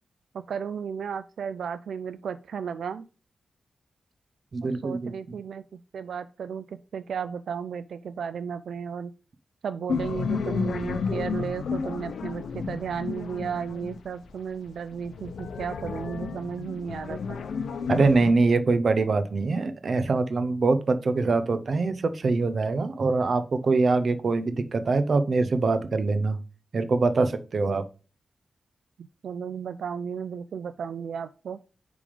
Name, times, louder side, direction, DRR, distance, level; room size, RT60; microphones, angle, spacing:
voice 1, 0.3-3.0 4.6-9.1 9.6-17.4 27.7-27.8 29.0-31.6, right 7 dB, 80° right, 11 dB, 0.3 m, -34 dB
voice 2, 4.5-5.4 17.9-26.4 26.7-27.8, right 3 dB, 45° right, 11 dB, 0.7 m, -24 dB
sound 1, 9.9-14.2 14.8-18.3, left 5 dB, 80° left, 0.8 m, -32 dB
8.5 x 3.5 x 5.1 m, 0.35 s
wide cardioid pair, 135°, 0 cm